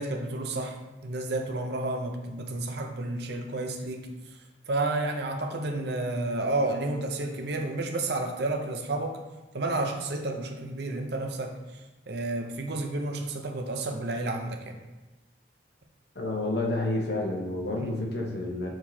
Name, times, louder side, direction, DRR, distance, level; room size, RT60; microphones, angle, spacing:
voice 1, 0.0-4.1 4.7-9.2 9.5-11.6 12.1-14.8 17.8-17.9, right 2 dB, 60° right, 4 dB, 0.7 m, -31 dB
voice 2, 16.1-18.7, left 2 dB, 60° left, 0 dB, 1.1 m, -29 dB
7.5 x 4.7 x 2.8 m, 1.1 s
head